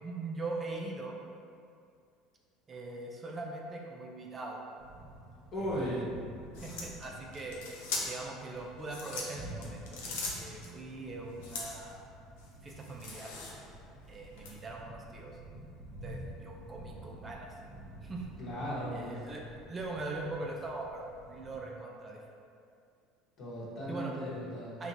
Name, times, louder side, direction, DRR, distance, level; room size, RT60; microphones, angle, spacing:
voice 1, 0.0-1.2 2.7-4.6 5.6-6.0 6.6-7.6 8.0-10.0 10.3-12.0 12.6-13.3 14.1-15.4 15.9-17.5 18.0-18.3 18.9-22.2 23.9-24.1 24.8-24.9, right 2 dB, 30° right, -1 dB, 0.3 m, -41 dB
sound 1, 4.8-21.6, right 1 dB, 55° right, 0.7 m, -50 dB
voice 2, 5.5-6.1 18.4-19.3 23.4-24.8, equal, 50° left, -7 dB, 0.9 m, -36 dB
sound 2, 6.5-8.3 8.8-10.7 11.4-11.9 12.4-13.8 14.4-14.5, left 3 dB, 85° left, 0.5 m, -40 dB
2.8 x 2.1 x 2.6 m, 2.3 s
supercardioid pair, 95°, 0 cm